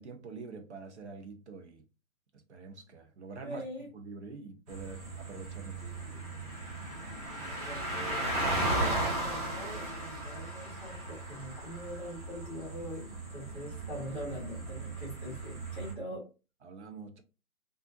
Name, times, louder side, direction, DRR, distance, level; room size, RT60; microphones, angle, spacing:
voice 1, 0.0-1.8 2.5-3.6 3.9-5.9 16.6-17.2, right 4 dB, 50° right, 0.7 m, -46 dB
voice 2, 3.4-3.9 5.8-6.2 6.9-16.3, equal, 5° left, 0.7 m, -44 dB
sound 1, 4.7-15.9, right 1 dB, 25° right, 1.1 m, -36 dB
3.4 x 2.5 x 2.7 m
hypercardioid pair, 150°, 44 cm